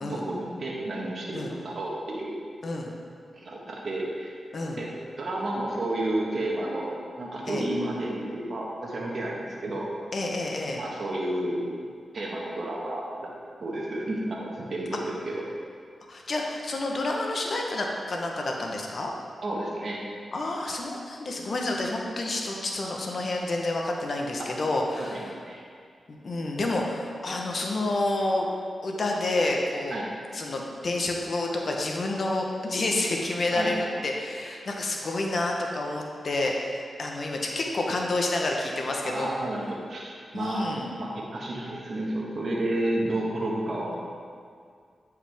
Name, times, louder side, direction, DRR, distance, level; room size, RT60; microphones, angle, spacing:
voice 1, 0.0-2.4 3.3-4.3 4.8-4.9 5.2-9.9 10.8-11.6 12.1-13.3 13.6-15.4 19.4-20.0 25.0-25.6 29.9-30.1 33.5-33.8 39.0-40.7 41.0-44.0, right 1 dB, 60° right, -3 dB, 1.3 m, -31 dB
voice 2, 2.6-2.9 4.5-4.8 7.5-7.7 10.1-10.8 16.1-19.1 20.3-25.3 26.1-28.5 28.8-30.0 30.3-39.3 40.3-40.9, left 2 dB, 60° left, 0 dB, 0.9 m, -29 dB
9.0 x 4.8 x 3.5 m, 2.2 s
cardioid pair, 55°, 0 cm